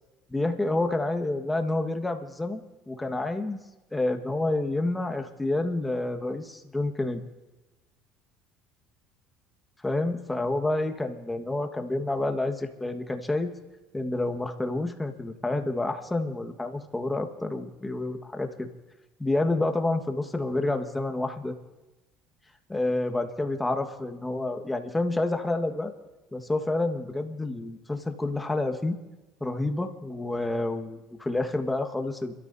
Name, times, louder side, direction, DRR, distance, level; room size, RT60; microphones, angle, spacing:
voice 1, 0.3-3.6 3.9-7.2 9.8-13.5 13.9-18.7 19.2-21.6 22.7-25.9 26.3-29.0 29.4-32.3, left 2 dB, 10° left, 6 dB, 1.5 m, -29 dB
29.5 x 13.5 x 2.7 m, 1.1 s
supercardioid pair, 85°, 0 cm